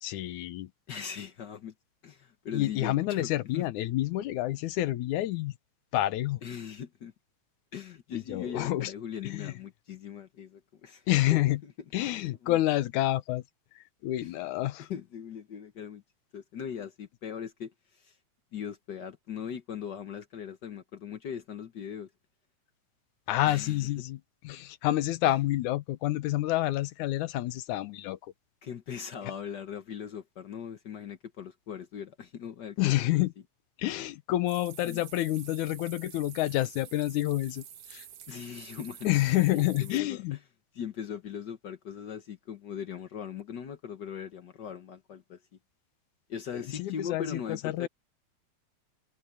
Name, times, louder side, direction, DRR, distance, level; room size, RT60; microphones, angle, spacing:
voice 1, 0.0-0.7 2.5-5.5 5.9-6.4 8.1-8.9 9.2-9.5 11.1-11.6 11.9-13.4 13.8-14.9 23.3-28.3 29.2-29.3 32.8-33.3 33.8-37.6 37.9-38.1 39.0-40.4 46.5-47.9, left 15 dB, 90° left, 2.4 m, -28 dB
voice 2, 0.9-1.7 2.0-3.7 6.4-7.1 7.7-11.7 12.4-12.6 14.2-14.3 14.8-16.0 16.3-18.2 18.5-22.1 23.4-23.9 28.6-33.2 34.8-35.0 38.3-39.1 39.5-40.2 40.7-45.4 46.3-47.9, left 8 dB, 65° left, 1.0 m, -40 dB
sound 1, 34.5-40.0, right 10 dB, 65° right, 2.6 m, -49 dB
open air
omnidirectional pair, 3.3 m